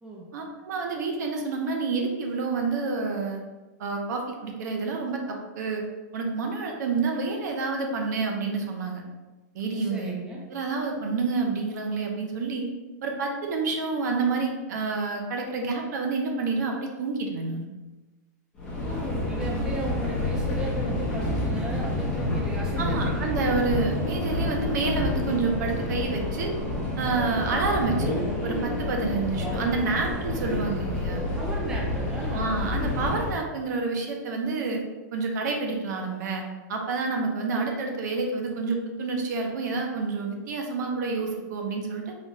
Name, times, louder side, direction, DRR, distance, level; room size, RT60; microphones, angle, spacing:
voice 1, 0.3-3.4 3.8-5.8 6.1-9.0 9.5-10.1 10.5-12.7 13.0-17.7 22.8-26.5 27.0-31.2 32.3-34.8 35.1-36.4 36.7-42.1, right 4 dB, 65° right, 2 dB, 0.7 m, -28 dB
voice 2, 9.8-10.4 18.8-23.3 31.4-32.6, right 1 dB, 5° right, -2 dB, 0.4 m, -36 dB
Subway metro underground, 18.6-33.4, left 1 dB, 10° left, 0.9 m, -29 dB
4.0 x 2.4 x 3.0 m, 1.2 s
supercardioid pair, 160°, 10 cm